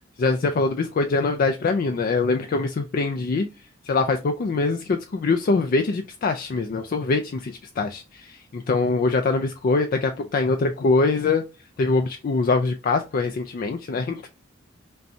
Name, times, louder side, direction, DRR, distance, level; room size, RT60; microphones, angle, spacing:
voice 1, 0.2-3.5 3.9-11.4 11.8-14.3, left 3 dB, 45° left, 0.4 m, -23 dB
5.3 x 2.2 x 2.6 m
head